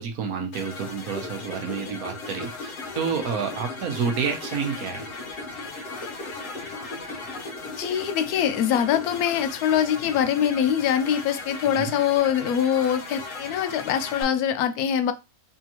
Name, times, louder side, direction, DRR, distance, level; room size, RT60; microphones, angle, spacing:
voice 1, 0.0-5.1 11.8-11.9, right 6 dB, 75° right, 5 dB, 1.2 m, -29 dB
sound 1, 0.5-14.2, left 4 dB, 60° left, 1.3 m, -38 dB
sound 2, 1.1-9.4, left 1 dB, 45° left, 0.9 m, -40 dB
voice 2, 7.7-15.1, left 9 dB, 80° left, 10 dB, 1.1 m, -23 dB
3.7 x 3.4 x 2.9 m, 0.25 s
omnidirectional pair, 1.6 m